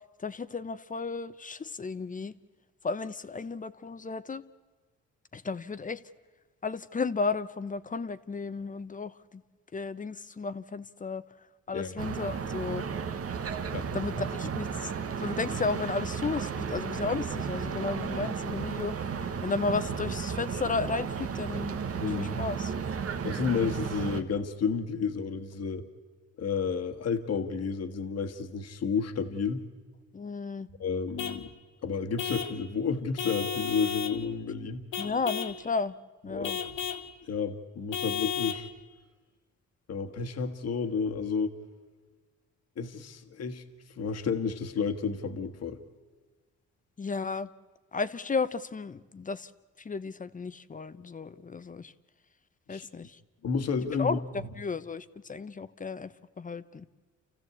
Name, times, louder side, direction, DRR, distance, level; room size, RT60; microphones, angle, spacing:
voice 1, 0.2-2.3 2.8-4.4 5.3-6.0 6.6-9.4 9.7-11.2 11.7-12.8 13.9-14.9 15.2-21.8 22.1-22.7 30.1-30.7 35.0-35.9 36.2-36.6 47.0-47.5 47.9-49.5 49.8-51.9 52.7-53.2 54.0-56.8, left 4 dB, 25° left, 14 dB, 0.8 m, -34 dB
sound 1, 12.0-24.2, right 6 dB, 50° right, 1.3 m, -34 dB
voice 2, 22.0-22.4 23.2-25.9 26.4-29.7 30.8-31.5 31.8-34.8 36.3-36.5 37.3-38.7 39.9-41.6 42.8-43.6 44.0-45.8 52.7-52.9 53.4-54.2, left 5 dB, 55° left, 6 dB, 1.6 m, -31 dB
Vehicle horn car horn honking / Truck, 31.2-31.4 32.2-32.6 33.2-34.2 34.9-35.6 36.4-37.1 37.9-38.7, left 7 dB, 80° left, 1.5 m, -33 dB
29.0 x 15.0 x 8.3 m, 1.4 s
cardioid pair, 90°, 30 cm